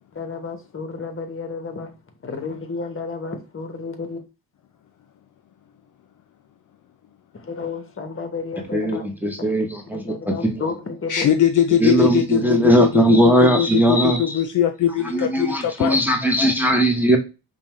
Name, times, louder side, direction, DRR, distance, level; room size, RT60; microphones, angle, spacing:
voice 1, 0.1-1.9 2.2-4.2 7.4-9.1 9.5-11.4, left 4 dB, 30° left, 1.0 m, -32 dB
voice 2, 8.7-10.8 11.8-14.4 15.1-17.2, right 1 dB, 5° right, 0.8 m, -19 dB
voice 3, 11.1-16.0, left 10 dB, 50° left, 0.5 m, -21 dB
5.2 x 2.3 x 3.1 m
cardioid pair, 95°, 40 cm